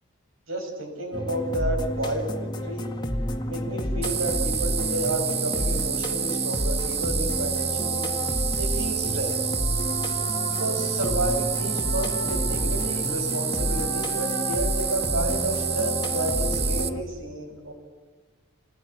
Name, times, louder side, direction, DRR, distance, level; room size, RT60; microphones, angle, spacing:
voice 1, 0.5-2.8 3.5-8.1 8.6-9.4 10.6-17.7, right 1 dB, 80° right, 3 dB, 7.0 m, -31 dB
sound 1, 1.1-17.0, left 1 dB, 20° left, 1.9 m, -30 dB
sound 2, 4.0-16.9, right 8 dB, 30° right, 1.0 m, -29 dB
27.5 x 19.5 x 9.7 m, 1.3 s
head